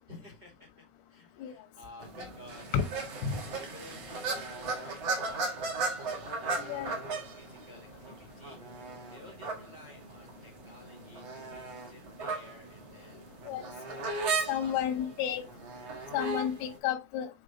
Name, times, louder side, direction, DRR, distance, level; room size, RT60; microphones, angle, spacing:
voice 1, 0.1-0.7 1.1-2.7 3.5-8.6 9.1-13.3 14.1-15.2 15.7-16.1, left 2 dB, 35° right, 1.8 m, -53 dB
sound 1, 2.0-16.8, right 3 dB, 75° right, 1.4 m, -37 dB
voice 2, 14.5-15.4 16.1-17.3, left 9 dB, 90° left, 3.6 m, -31 dB
8.8 x 3.5 x 3.9 m
omnidirectional pair, 5.6 m